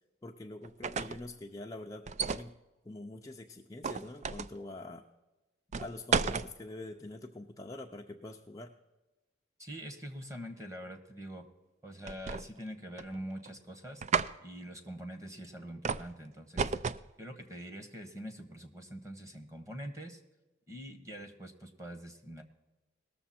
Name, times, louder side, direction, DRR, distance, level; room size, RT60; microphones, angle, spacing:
voice 1, 0.2-2.6 2.8-5.1 5.8-8.7, left 2 dB, 20° left, 2 dB, 0.5 m, -45 dB
sound 1, 0.6-1.3 2.1-2.5 3.8-4.6 5.7-6.5 12.1-12.7 13.0-13.5 14.0-14.3 15.9-16.1 16.6-17.1, right 5 dB, 35° right, 0.4 m, -32 dB
voice 2, 9.6-11.5 11.8-14.0 14.4-16.7 17.2-20.2 20.7-22.4, equal, 15° right, 5 dB, 1.3 m, -44 dB
19.0 x 6.9 x 4.3 m, 1.1 s
head